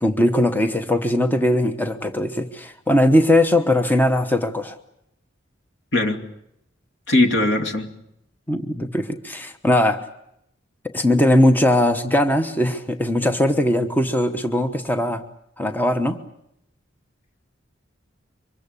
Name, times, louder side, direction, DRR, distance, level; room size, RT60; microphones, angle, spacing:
voice 1, 0.0-4.8 8.5-10.1 10.9-15.2 15.6-16.2, left 1 dB, 10° left, 7 dB, 1.2 m, -19 dB
voice 2, 7.1-7.9, left 2 dB, 65° left, 6 dB, 2.5 m, -19 dB
25.0 x 22.5 x 8.4 m, 0.77 s
head